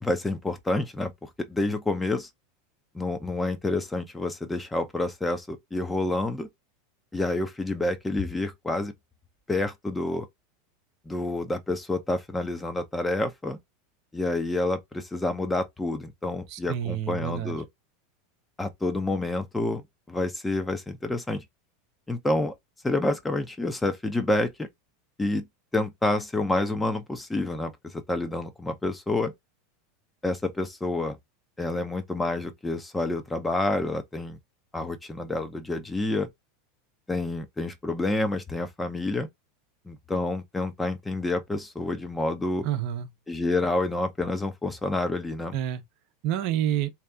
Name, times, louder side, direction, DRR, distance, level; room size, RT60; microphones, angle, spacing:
voice 1, 0.0-2.3 2.9-6.5 7.1-8.9 9.5-10.3 11.1-13.6 14.1-17.7 18.6-19.8 20.1-21.4 22.1-22.5 22.8-24.7 25.2-25.5 25.7-29.3 30.2-31.2 31.6-34.4 34.7-36.3 37.1-39.3 39.9-42.7 43.3-45.6, left 2 dB, 10° left, 0.9 m, -28 dB
voice 2, 16.5-17.6 42.6-43.1 45.5-45.8 46.2-46.9, right 11 dB, 55° right, 0.8 m, -28 dB
3.2 x 2.9 x 3.6 m
hypercardioid pair, 90°, 0 cm